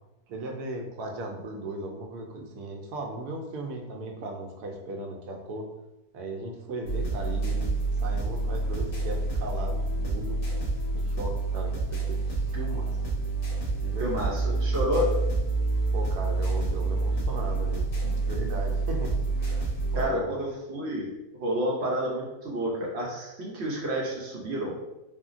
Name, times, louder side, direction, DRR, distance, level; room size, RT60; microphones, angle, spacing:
voice 1, 0.3-5.7 6.1-10.4 10.9-13.0 13.8-14.4 15.9-19.7 20.0-20.4, right 2 dB, 85° right, 2 dB, 1.1 m, -37 dB
sound 1, 6.8-20.0, right 3 dB, 70° left, 1.4 m, -28 dB
voice 2, 14.0-15.1 19.9-21.1 21.4-24.8, equal, 60° right, -3 dB, 0.7 m, -30 dB
3.4 x 2.2 x 2.4 m, 0.96 s
omnidirectional pair, 1.6 m